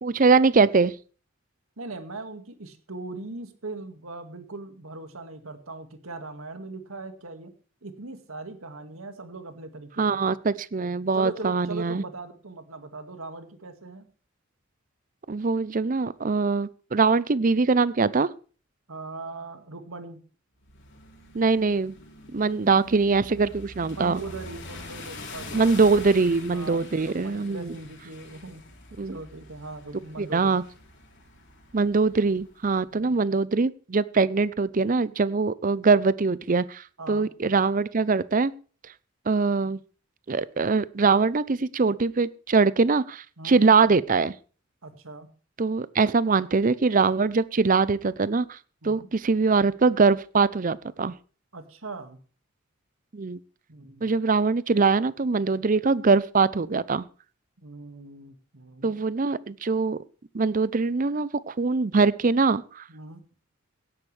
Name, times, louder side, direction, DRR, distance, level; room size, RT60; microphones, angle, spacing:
voice 1, 0.0-0.9 10.0-12.0 15.3-18.3 21.3-22.0 22.3-24.2 25.5-27.7 29.0-29.2 30.2-30.6 31.7-38.5 39.3-39.8 40.3-44.3 45.6-48.6 48.8-51.1 53.1-53.4 54.0-57.1 58.8-60.0 60.3-62.8, right 4 dB, 40° right, 19 dB, 0.5 m, -22 dB
voice 2, 1.8-7.5 7.8-10.3 11.1-14.1 18.9-20.2 23.9-28.6 29.0-30.6 32.9-33.2 37.0-37.3 43.4-43.6 44.8-45.3 48.8-49.1 51.5-52.2 53.7-54.1 57.6-59.0 62.9-63.2, right 3 dB, 85° right, 8 dB, 2.0 m, -40 dB
sound 1, 20.6-32.8, left 2 dB, 60° left, 3.6 m, -44 dB
17.0 x 10.5 x 3.3 m, 0.38 s
head